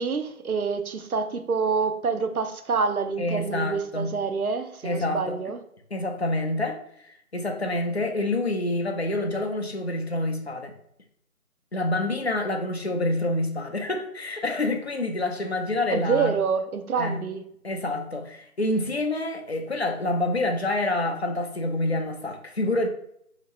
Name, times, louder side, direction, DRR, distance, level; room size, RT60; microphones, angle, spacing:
voice 1, 0.0-5.6 15.9-17.4, right 5 dB, 75° right, 8 dB, 0.7 m, -27 dB
voice 2, 3.2-4.1 4.8-5.4 5.9-10.7 11.7-16.3 17.0-17.2 17.6-22.9, left 2 dB, 50° left, 4 dB, 0.5 m, -27 dB
2.8 x 2.6 x 4.1 m, 0.70 s
figure-of-eight pair, 170°, 44 cm